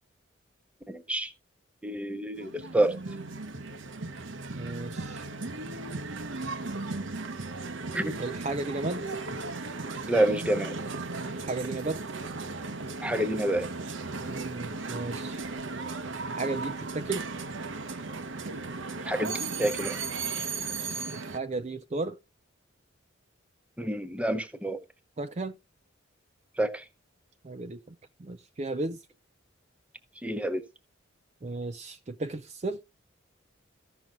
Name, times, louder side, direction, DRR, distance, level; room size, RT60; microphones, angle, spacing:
voice 1, 0.9-1.3 1.8-3.0 7.9-8.1 10.1-10.7 13.0-13.7 19.0-20.0 23.8-24.8 26.6-26.9 30.2-30.6, right 1 dB, 5° right, 0.8 m, -28 dB
sound 1, 2.3-21.4, right 3 dB, 70° right, 0.9 m, -36 dB
voice 2, 4.5-5.3 8.2-9.0 11.4-12.0 14.1-15.4 16.3-17.2 21.1-22.2 25.2-25.6 27.4-27.9 28.2-29.0 31.4-32.8, right 3 dB, 35° right, 0.5 m, -34 dB
14.5 x 6.0 x 3.7 m
head